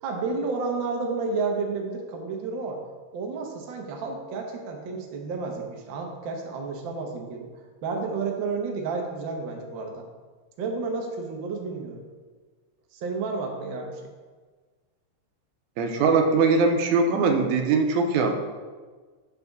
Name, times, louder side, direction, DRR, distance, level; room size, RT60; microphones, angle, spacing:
voice 1, 0.0-2.8 3.1-7.5 7.8-10.0 10.6-12.0 12.9-14.1, right 4 dB, 70° right, 1 dB, 1.1 m, -31 dB
voice 2, 15.8-18.3, right 4 dB, 85° right, 5 dB, 2.0 m, -21 dB
6.4 x 5.5 x 3.5 m, 1.4 s
omnidirectional pair, 3.3 m